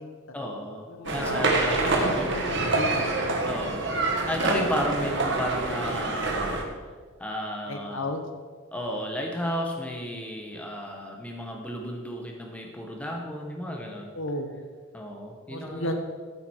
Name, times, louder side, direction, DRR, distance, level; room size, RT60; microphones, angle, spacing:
voice 1, 0.3-2.4 3.4-3.9 4.3-6.6 7.2-8.1 8.7-14.1 14.9-16.0, equal, 5° left, 0 dB, 1.4 m, -33 dB
voice 2, 0.9-1.4 2.0-3.1 7.7-8.2 14.1-14.5 15.5-16.0, left 1 dB, 65° left, 6 dB, 1.2 m, -33 dB
sound 1, 1.0-6.6, right 2 dB, 55° right, 1.7 m, -26 dB
13.5 x 8.1 x 4.7 m, 1.5 s
head